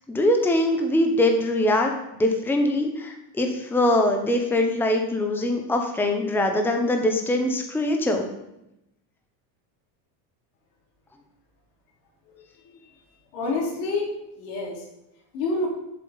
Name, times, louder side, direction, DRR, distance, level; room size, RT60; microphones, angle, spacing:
voice 1, 0.1-1.9 2.2-8.3, left 1 dB, 5° left, 3 dB, 0.8 m, -22 dB
voice 2, 13.3-14.8 15.3-15.7, left 3 dB, 85° left, -1 dB, 2.7 m, -28 dB
7.6 x 7.1 x 4.0 m, 0.85 s
supercardioid pair, 110°, 50 cm